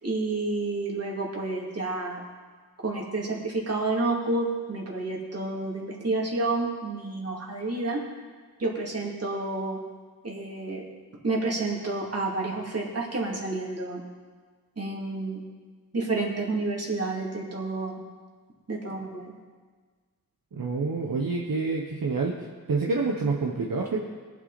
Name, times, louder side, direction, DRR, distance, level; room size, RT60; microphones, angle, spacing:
voice 1, 0.0-2.2 2.8-8.0 8.6-9.8 10.2-10.8 11.2-14.0 14.8-15.4 15.9-18.0 18.7-19.3, right 2 dB, 40° right, -2 dB, 3.0 m, -29 dB
voice 2, 20.5-22.3 22.7-24.0, right 4 dB, 65° right, -1 dB, 1.4 m, -27 dB
22.0 x 8.3 x 4.3 m, 1.5 s
wide cardioid pair, 90°, 36 cm